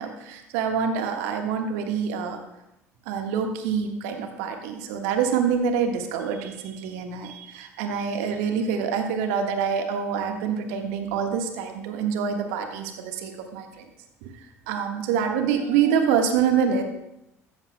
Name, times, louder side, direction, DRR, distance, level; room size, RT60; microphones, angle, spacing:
voice 1, 0.0-2.4 3.0-13.9 14.2-14.3 14.7-16.8, right 7 dB, 70° right, 4 dB, 1.5 m, -26 dB
14.5 x 13.5 x 2.3 m, 0.85 s
hypercardioid pair, 65°, 8 cm